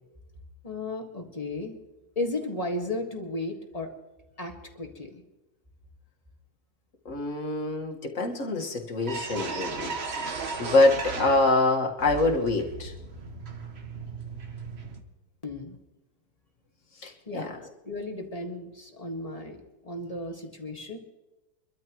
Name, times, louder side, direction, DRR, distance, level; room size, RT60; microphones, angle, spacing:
voice 1, 0.6-1.8 2.2-3.9 4.4-5.2 15.4-15.8 17.3-17.6 17.9-21.0, left 2 dB, 20° left, 1 dB, 1.8 m, -34 dB
voice 2, 7.1-9.9 10.2-12.9 17.0-17.5, left 2 dB, 50° left, 1 dB, 2.1 m, -25 dB
sound 1, 8.6-8.7 9.0-11.7 12.0-15.0, right 4 dB, 45° right, 1.3 m, -36 dB
25.0 x 13.0 x 3.1 m, 1.0 s
omnidirectional pair, 1.7 m